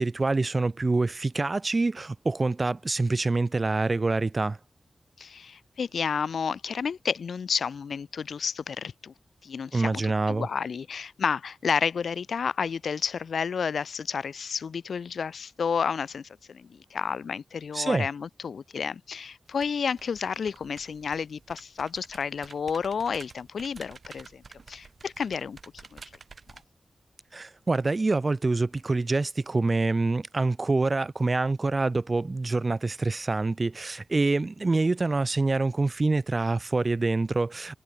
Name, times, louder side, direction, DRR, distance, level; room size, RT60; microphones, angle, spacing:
voice 1, 0.0-4.6 9.7-10.5 17.7-18.1 27.3-37.8, right 3 dB, 45° right, 1.5 m, -26 dB
voice 2, 5.2-9.1 9.4-26.0, left 6 dB, 80° left, 1.5 m, -31 dB
sound 1, 19.5-26.6, right 4 dB, 65° right, 7.9 m, -50 dB
cardioid pair, 45°, 0 cm